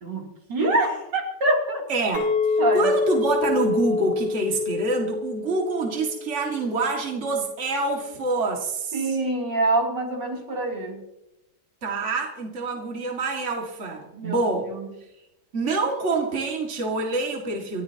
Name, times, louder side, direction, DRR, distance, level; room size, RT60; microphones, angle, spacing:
voice 1, 0.0-1.9 2.6-3.0 8.9-11.0 14.1-14.4 14.7-14.9, right 2 dB, 65° right, 0 dB, 3.7 m, -25 dB
voice 2, 1.9-2.3 2.7-9.0 11.8-14.7 15.5-17.8, right 3 dB, 40° right, 0 dB, 2.3 m, -26 dB
Chink clink, 2.1-6.5 6.8-7.3, left 4 dB, 80° left, 3.3 m, -26 dB
29.0 x 13.5 x 2.9 m, 0.89 s
omnidirectional pair, 2.0 m